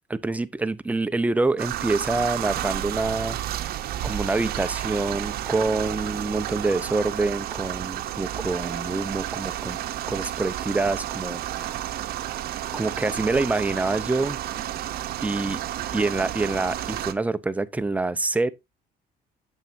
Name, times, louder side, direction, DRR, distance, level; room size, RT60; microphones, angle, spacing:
voice 1, 0.1-3.4 4.0-9.8 10.1-11.9 12.7-14.4 15.2-15.6 15.9-18.5, right 3 dB, 10° right, 0.5 m, -26 dB
sound 1, 1.6-17.1, right 12 dB, 65° right, 0.8 m, -31 dB
9.0 x 7.3 x 2.6 m
cardioid pair, 110°, 17 cm